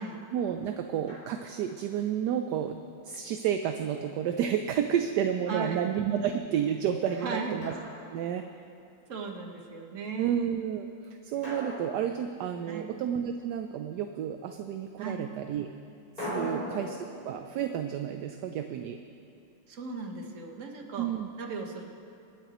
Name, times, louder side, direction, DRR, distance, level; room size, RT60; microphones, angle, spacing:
voice 1, 0.3-7.7 8.1-8.4 10.2-15.7 16.2-17.0 17.2-19.0 21.0-21.3, right 9 dB, 75° right, 6 dB, 1.0 m, -31 dB
Drum, 1.1-1.8 3.8-4.8 7.6-8.8 11.4-13.1 16.2-19.2, equal, 25° left, 3.9 m, -42 dB
voice 2, 5.5-5.8 7.2-7.6 9.1-10.5 12.6-12.9 15.0-15.2 16.4-16.7 19.7-21.1 21.4-21.8, right 4 dB, 45° right, 2 dB, 1.4 m, -37 dB
26.5 x 9.0 x 3.0 m, 2.5 s
omnidirectional pair, 2.1 m